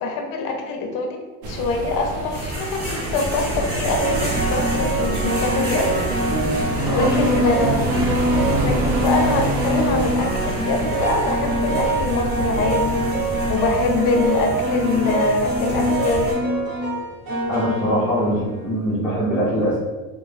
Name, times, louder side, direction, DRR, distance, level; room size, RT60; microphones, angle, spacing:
voice 1, 0.0-5.9 6.9-7.9 8.6-13.0 13.5-16.4, left 3 dB, 45° left, 3 dB, 0.6 m, -24 dB
sound 1, 1.4-13.6, right 3 dB, 80° right, 0.6 m, -28 dB
sound 2, 2.3-16.3, right 1 dB, 20° right, 0.9 m, -32 dB
sound 3, 2.3-2.6 3.9-18.7, right 1 dB, 50° right, 1.0 m, -24 dB
voice 2, 17.5-19.8, equal, ahead, -10 dB, 0.5 m, -22 dB
2.4 x 2.0 x 3.1 m, 1.3 s
supercardioid pair, 125°, 47 cm